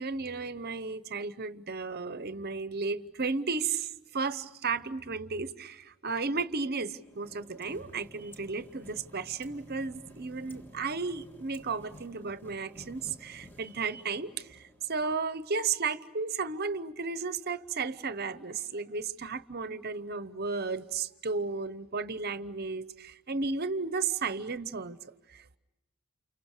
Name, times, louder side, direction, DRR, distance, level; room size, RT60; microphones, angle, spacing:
voice 1, 0.0-25.6, right 4 dB, 45° right, 0.9 m, -34 dB
sound 1, 6.9-15.1, left 1 dB, 10° left, 1.7 m, -53 dB
30.0 x 29.0 x 6.6 m
head